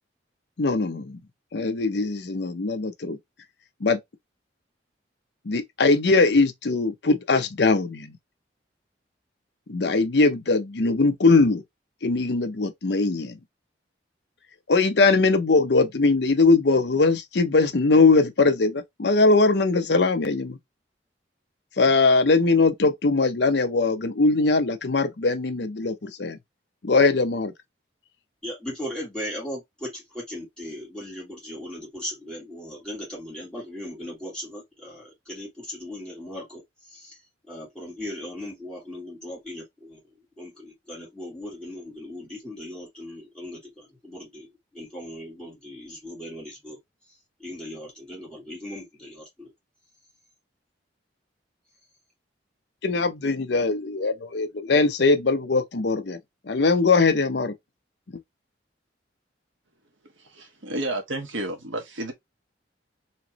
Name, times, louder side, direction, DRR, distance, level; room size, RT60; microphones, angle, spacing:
voice 1, 0.6-1.2 1.5-3.2 3.8-4.0 5.5-8.2 9.7-11.6 12.0-13.4 14.7-20.6 21.8-26.4 26.8-27.5 52.8-56.2 56.5-57.5, left 3 dB, 60° left, 0.7 m, -21 dB
voice 2, 28.4-37.2 37.5-46.8 47.1-49.5, left 1 dB, 5° left, 1.9 m, -38 dB
voice 3, 60.0-62.1, right 1 dB, 90° right, 1.4 m, -31 dB
4.3 x 3.0 x 3.0 m
head